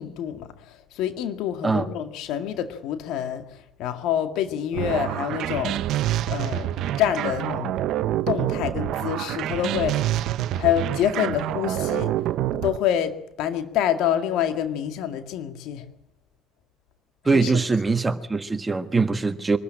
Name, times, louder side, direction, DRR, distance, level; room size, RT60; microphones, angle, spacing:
voice 1, 0.0-5.8 6.3-7.7 8.3-10.1 10.5-12.2 12.6-15.9 17.3-17.6, left 10 dB, 70° left, 2.0 m, -27 dB
sound 1, 4.7-12.8, right 12 dB, 65° right, 0.8 m, -27 dB
voice 2, 17.2-19.6, right 4 dB, 20° right, 1.4 m, -22 dB
24.0 x 13.5 x 8.9 m
hypercardioid pair, 70°, 0 cm